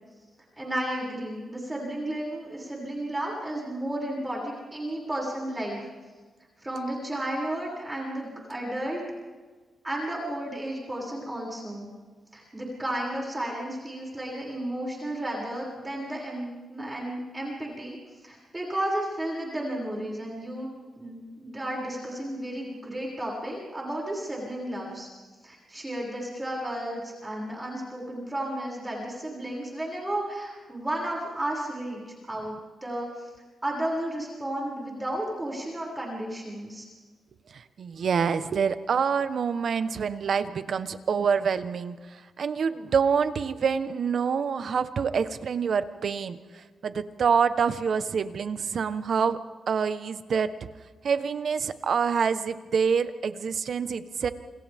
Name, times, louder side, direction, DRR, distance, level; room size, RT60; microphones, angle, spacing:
voice 1, 0.6-5.9 6.6-9.0 9.8-11.9 12.3-20.7 21.0-25.1 25.4-32.6 32.8-33.3 33.6-36.9, right 1 dB, 15° right, -3 dB, 6.9 m, -33 dB
voice 2, 37.5-42.0 42.4-46.4 46.8-49.4 49.7-50.5 51.0-54.3, right 6 dB, 60° right, 11 dB, 1.3 m, -26 dB
28.5 x 28.0 x 3.7 m, 1.4 s
cardioid pair, 105°, 0 cm